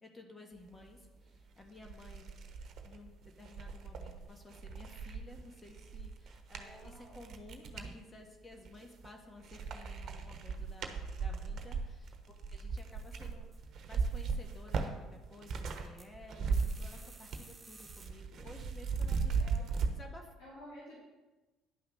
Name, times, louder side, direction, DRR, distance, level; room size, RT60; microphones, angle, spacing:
voice 1, 0.0-2.3 2.8-3.1 3.4-12.1 12.5-20.3, left 2 dB, 25° left, 2 dB, 1.6 m, -54 dB
sound 1, 1.3-1.4 1.8-7.9 8.5-9.1 9.4-15.9 16.1-17.5 17.8-19.9, right 5 dB, 55° right, 1.1 m, -37 dB
voice 2, 6.6-7.2 19.4-19.7 20.4-21.0, equal, 80° left, -9 dB, 2.9 m, -52 dB
sound 2, 12.8-13.6 13.9-14.6 16.0-16.1 16.5-18.1, right 3 dB, 20° right, 1.8 m, -56 dB
10.5 x 5.7 x 5.6 m, 1.2 s
hypercardioid pair, 60°, 0 cm